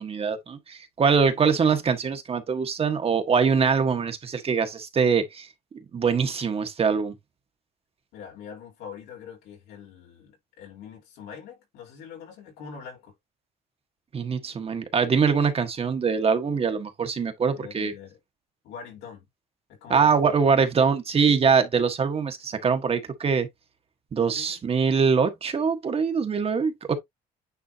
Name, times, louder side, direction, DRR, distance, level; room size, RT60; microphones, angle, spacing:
voice 1, 0.0-5.5 5.9-7.1 14.1-17.9 19.9-23.5 24.1-26.9, right 6 dB, 35° right, 1.5 m, -23 dB
voice 2, 1.2-1.5 8.1-13.1 17.5-18.2 18.6-19.3 19.7-20.3 24.3-24.6, left 7 dB, 85° left, 4.1 m, -43 dB
9.6 x 3.7 x 2.8 m
cardioid pair, 110°, 17 cm